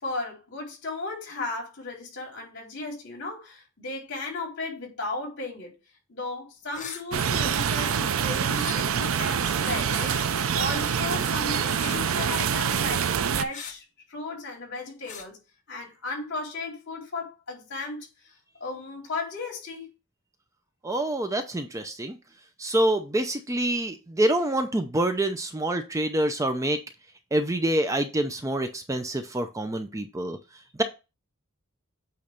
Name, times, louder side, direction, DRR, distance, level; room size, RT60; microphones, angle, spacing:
voice 1, 0.0-5.7 6.1-15.4 15.7-18.3 18.6-19.9, left 3 dB, 60° left, 3.9 m, -35 dB
sound 1, 6.7-7.0 8.4-8.8 10.0-10.3 11.8-12.1 13.5-13.7 15.0-15.3, left 6 dB, 35° left, 1.3 m, -40 dB
sound 2, 7.1-13.4, right 7 dB, 70° right, 0.5 m, -26 dB
voice 2, 20.8-22.2 22.6-26.8 27.3-30.4, right 1 dB, 15° right, 0.6 m, -26 dB
8.6 x 3.2 x 5.2 m
head